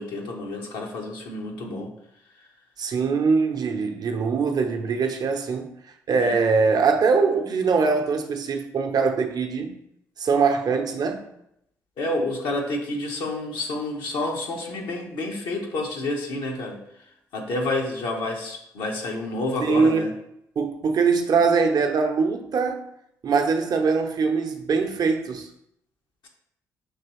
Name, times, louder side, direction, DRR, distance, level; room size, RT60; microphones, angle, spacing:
voice 1, 0.0-1.9 2.4-2.5 6.2-6.4 12.0-16.8 17.3-20.1, left 2 dB, 75° left, 0.9 m, -29 dB
voice 2, 2.8-5.7 6.1-9.8 10.2-11.3 19.6-20.1 20.6-22.9 23.2-25.5, right 5 dB, 55° right, 0.7 m, -22 dB
5.9 x 3.0 x 3.0 m
hypercardioid pair, 45°, 8 cm